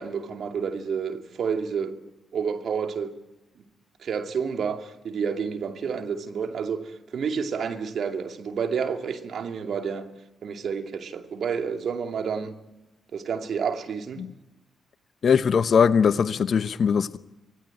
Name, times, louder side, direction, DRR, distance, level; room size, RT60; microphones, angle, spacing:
voice 1, 0.0-2.0 2.3-3.1 4.0-10.1 10.4-12.6 13.1-14.2, right 6 dB, 60° right, 2.4 m, -29 dB
voice 2, 15.2-17.2, left 6 dB, 55° left, 0.9 m, -21 dB
25.5 x 17.5 x 9.0 m
hypercardioid pair, 40°, 0 cm